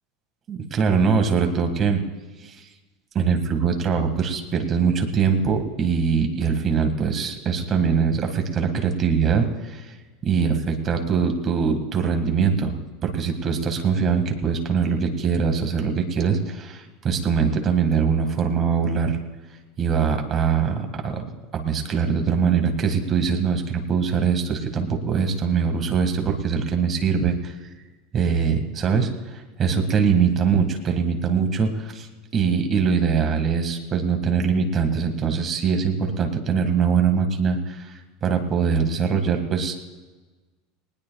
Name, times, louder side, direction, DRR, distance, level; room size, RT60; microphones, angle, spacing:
voice 1, 0.5-2.0 2.4-2.7 3.1-10.0 10.2-12.8 13.0-19.2 19.8-21.3 21.5-27.7 28.1-39.8, right 6 dB, 25° right, 4 dB, 1.8 m, -22 dB
20.5 x 19.5 x 2.3 m, 1.3 s
supercardioid pair, 160°, 0 cm